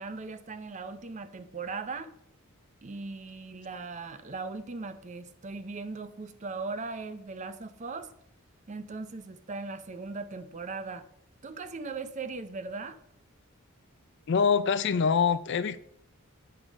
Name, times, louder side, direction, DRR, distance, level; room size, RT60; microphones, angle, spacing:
voice 1, 0.0-2.1 2.8-8.1 8.7-11.1 11.4-13.0, right 4 dB, 30° right, 0.5 m, -38 dB
voice 2, 14.3-15.8, left 6 dB, 50° left, 0.4 m, -24 dB
7.9 x 3.9 x 6.0 m
head